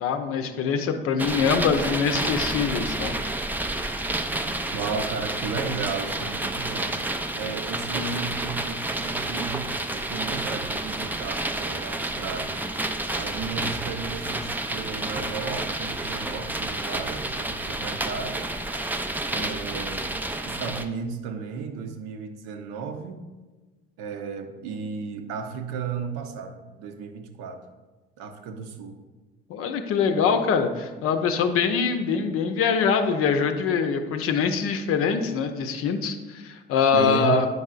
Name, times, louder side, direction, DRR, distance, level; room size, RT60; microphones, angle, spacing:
voice 1, 0.0-3.1 19.3-19.5 29.5-37.5, left 6 dB, 50° left, 7 dB, 0.6 m, -24 dB
sound 1, 1.2-20.8, right 2 dB, 5° right, 0.4 m, -30 dB
voice 2, 4.7-7.0 7.4-12.6 13.1-18.5 19.3-20.1 20.4-23.2 24.0-27.6 28.2-29.0 36.9-37.4, right 5 dB, 60° right, 6 dB, 0.7 m, -34 dB
9.3 x 5.4 x 2.4 m, 1.3 s
figure-of-eight pair, 50°, 29 cm